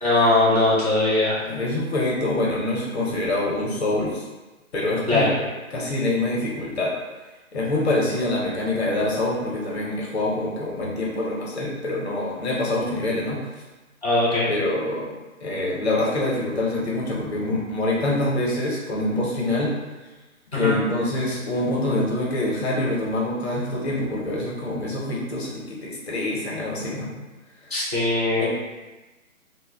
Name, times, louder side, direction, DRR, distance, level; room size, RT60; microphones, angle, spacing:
voice 1, 0.0-1.4 5.1-5.3 14.0-14.5 20.5-20.7 27.7-28.5, left 2 dB, 30° right, -9 dB, 0.4 m, -20 dB
voice 2, 1.4-4.2 4.7-6.9 7.5-13.4 14.5-15.0 15.4-19.7 20.5-27.1 28.4-28.5, left 2 dB, 50° left, -3 dB, 0.7 m, -25 dB
2.1 x 2.0 x 3.3 m, 1.2 s
hypercardioid pair, 160°, 43 cm